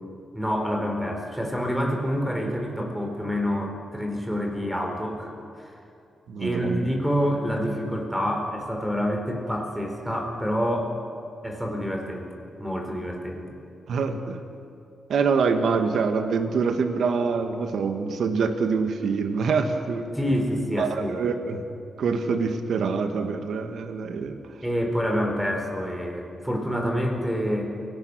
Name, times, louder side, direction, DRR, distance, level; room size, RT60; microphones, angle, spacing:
voice 1, 0.3-5.8 6.4-10.9 11.4-13.6 20.1-21.3 24.6-27.7, equal, 5° right, 2 dB, 4.3 m, -27 dB
voice 2, 6.3-6.8 13.9-14.4 15.1-20.1 20.8-21.6 22.0-24.4, right 5 dB, 75° right, 6 dB, 1.9 m, -25 dB
29.0 x 18.0 x 6.4 m, 2.5 s
cardioid pair, 100°, 0 cm